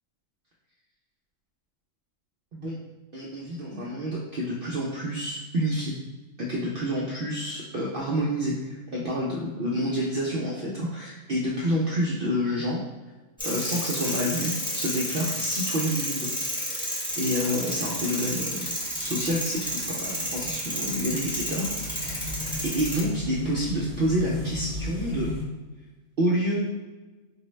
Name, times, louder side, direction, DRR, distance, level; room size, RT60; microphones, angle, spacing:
voice 1, 3.1-5.9 6.4-12.8 13.4-16.9 17.1-22.3 22.6-25.3 26.2-26.6, equal, 60° right, -4 dB, 0.5 m, -28 dB
sound 1, 13.4-23.0, equal, 5° left, 0.7 m, -31 dB
sound 2, 17.1-25.4, equal, 80° left, 1.5 m, -36 dB
4.5 x 2.0 x 3.1 m, 1.2 s
omnidirectional pair, 1.4 m